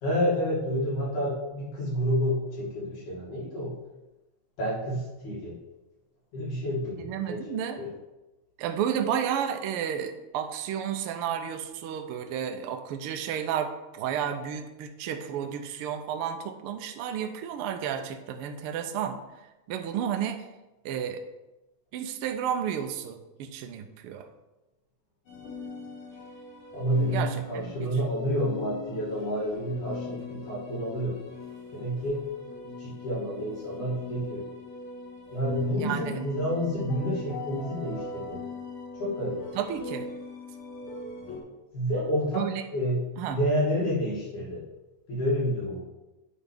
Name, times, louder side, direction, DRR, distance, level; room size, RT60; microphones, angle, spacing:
voice 1, 0.0-3.7 4.6-5.6 6.3-7.4 7.8-7.9 26.7-31.2 31.7-32.3 32.8-34.5 35.3-38.4 39.0-39.4 41.7-44.6 45.1-45.8, equal, 80° left, -5 dB, 4.0 m, -29 dB
voice 2, 7.0-7.8 8.6-19.2 19.7-20.4 20.8-21.2 21.9-24.3 27.1-27.9 35.7-36.2 39.5-40.1 42.3-42.6 43.2-43.4, right 8 dB, 90° right, 6 dB, 1.2 m, -32 dB
sound 1, 25.3-41.4, left 3 dB, 50° left, 2.2 m, -41 dB
9.1 x 4.2 x 5.2 m, 1.0 s
omnidirectional pair, 3.4 m